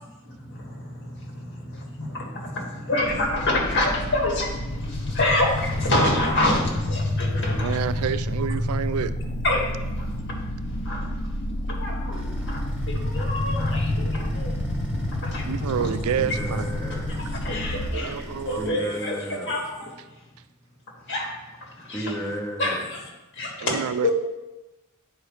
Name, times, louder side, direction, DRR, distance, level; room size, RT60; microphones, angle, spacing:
voice 1, 0.2-7.8 9.4-9.6 10.0-10.1 10.8-11.0 11.7-12.2 12.4-12.6 12.9-14.5 15.2-15.5 17.4-19.9 21.1-21.3 21.8-22.1 22.6-23.0 23.4-24.1, left 1 dB, 55° left, -1 dB, 1.7 m, -27 dB
sound 1, 3.0-17.9, left 1 dB, 35° left, 0.6 m, -29 dB
voice 2, 7.6-9.1 15.4-16.7 17.9-18.8 23.6-24.1, right 8 dB, 85° right, 14 dB, 0.4 m, -28 dB
sound 2, 12.1-18.7, equal, 5° right, 1.6 m, -38 dB
voice 3, 16.1-17.3 18.6-19.6 21.9-22.8, equal, 15° left, 0 dB, 1.1 m, -33 dB
9.8 x 4.8 x 3.2 m, 1.1 s
head